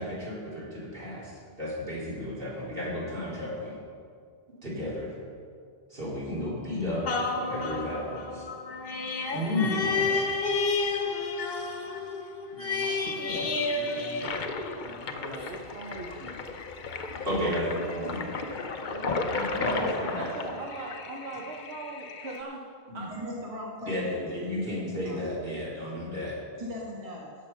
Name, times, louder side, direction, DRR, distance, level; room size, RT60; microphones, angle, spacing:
voice 1, 0.0-1.3 1.6-3.8 4.6-5.2 5.9-7.1 7.3-8.5 9.3-10.4 17.2-18.7 19.0-20.3 22.9-23.0 23.9-26.4, left 1 dB, 60° right, -7 dB, 3.9 m, -33 dB
sound 1, 7.1-14.9 15.4-15.5, left 3 dB, 70° left, 1.3 m, -30 dB
voice 2, 12.5-14.4 14.8-16.4 18.8-22.7 22.9-23.1, right 2 dB, 85° right, -2 dB, 1.3 m, -41 dB
Toilet flush, 13.3-22.4, left 4 dB, 55° left, 0.8 m, -36 dB
voice 3, 19.6-20.2 23.1-24.6 25.0-25.3 26.6-27.3, equal, 35° right, -4 dB, 1.9 m, -39 dB
16.0 x 6.4 x 5.7 m, 2.1 s
omnidirectional pair, 1.0 m